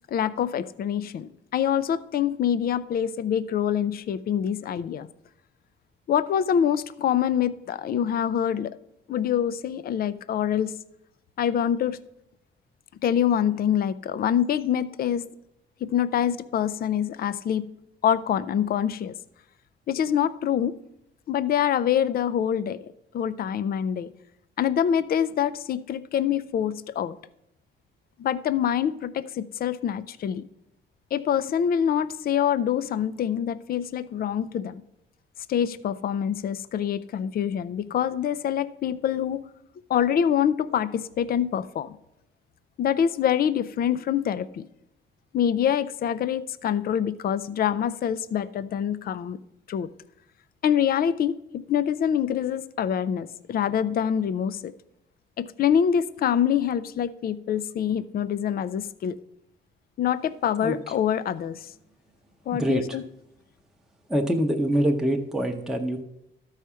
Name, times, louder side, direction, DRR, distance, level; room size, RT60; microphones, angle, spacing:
voice 1, 0.1-5.1 6.1-8.8 9.1-10.7 11.4-12.0 13.0-15.3 15.8-17.7 18.0-19.1 19.9-20.7 21.3-22.8 23.1-24.1 24.6-27.2 28.2-30.4 31.1-34.8 35.5-39.4 39.9-42.0 42.8-44.7 45.3-49.4 49.7-49.9 50.6-54.7 55.4-59.2 60.0-61.7 62.5-63.0, left 9 dB, 50° left, 16 dB, 0.4 m, -25 dB
voice 2, 62.5-63.0 64.1-66.0, right 1 dB, 5° right, 2 dB, 0.8 m, -25 dB
12.5 x 4.8 x 5.6 m, 0.83 s
cardioid pair, 90°, 20 cm